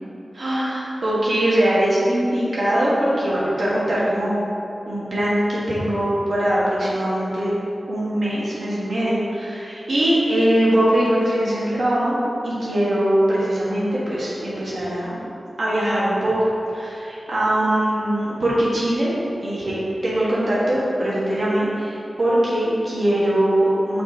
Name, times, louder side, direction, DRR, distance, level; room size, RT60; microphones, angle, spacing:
voice 1, 0.3-4.4 4.8-7.5 7.9-12.2 12.4-15.3 15.6-24.0, right 1 dB, 65° right, -8 dB, 1.4 m, -21 dB
5.7 x 4.2 x 4.0 m, 2.9 s
wide cardioid pair, 95°, 0 cm